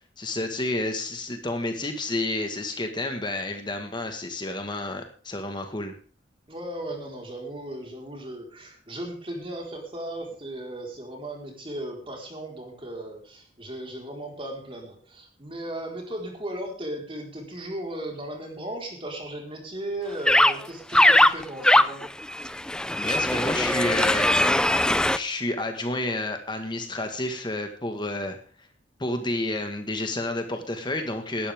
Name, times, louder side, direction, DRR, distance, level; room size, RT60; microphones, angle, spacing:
voice 1, 0.2-5.9 23.0-24.6 25.1-28.4 29.0-31.5, left 2 dB, 25° left, 5 dB, 1.6 m, -30 dB
voice 2, 6.5-22.0, right 1 dB, 30° right, 1 dB, 4.5 m, -36 dB
sound 1, 20.3-20.5 20.9-25.2, left 1 dB, 5° left, 0.5 m, -20 dB
18.5 x 12.0 x 3.6 m, 0.41 s
head